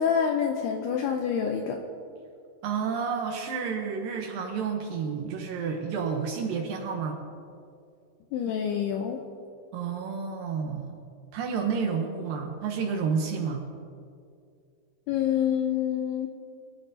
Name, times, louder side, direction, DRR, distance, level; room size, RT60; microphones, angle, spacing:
voice 1, 0.0-1.8 8.3-9.2 15.1-16.3, left 8 dB, 85° left, 3 dB, 2.4 m, -27 dB
voice 2, 2.6-7.2 9.7-11.0 11.3-13.6, right 6 dB, 85° right, 2 dB, 2.0 m, -30 dB
23.0 x 11.0 x 2.7 m, 2.4 s
omnidirectional pair, 5.3 m